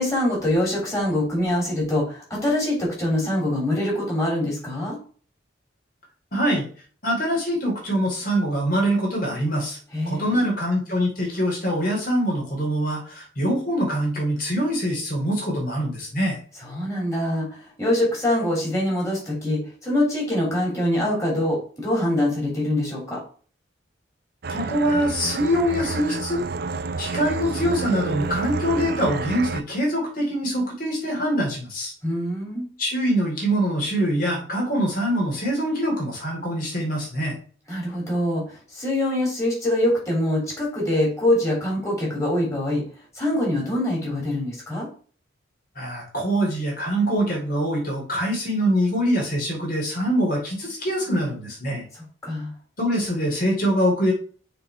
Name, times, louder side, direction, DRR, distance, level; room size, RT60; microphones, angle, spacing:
voice 1, 0.0-5.0 9.9-10.4 16.6-23.2 32.0-32.7 37.7-42.8 43.1-44.9 51.9-52.5, left 1 dB, 15° left, -3 dB, 3.4 m, -24 dB
voice 2, 6.3-6.7 7.0-9.8 10.0-16.4 24.5-26.4 27.0-31.9 32.8-37.4 45.7-51.8 52.8-54.1, equal, 45° left, -2 dB, 3.1 m, -24 dB
sound 1, 24.4-29.6, right 3 dB, 50° right, 0.5 m, -29 dB
6.6 x 3.9 x 5.7 m, 0.43 s
head